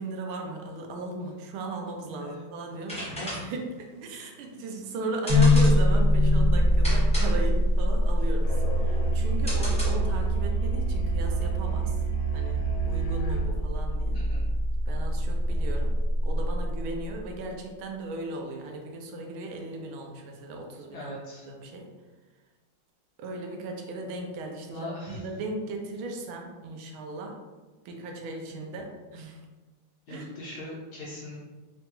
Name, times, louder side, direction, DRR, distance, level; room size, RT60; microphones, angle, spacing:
voice 1, 0.0-3.1 3.4-8.6 8.8-12.0 12.3-14.2 14.9-15.9 16.2-21.8 23.2-27.4 27.8-29.4 30.1-30.2, right 2 dB, 85° right, 2 dB, 1.4 m, -37 dB
sound 1, 2.7-10.3, equal, 10° left, 0.3 m, -38 dB
voice 2, 3.0-3.5 14.1-14.5 20.9-21.5 24.7-25.2 30.1-31.4, left 1 dB, 65° left, -5 dB, 1.0 m, -40 dB
sound 2, 5.3-17.3, left 1 dB, 20° right, 0.7 m, -24 dB
Musical instrument, 8.4-13.6, right 7 dB, 85° left, 1.4 m, -30 dB
3.9 x 2.2 x 2.9 m, 1.3 s
omnidirectional pair, 2.3 m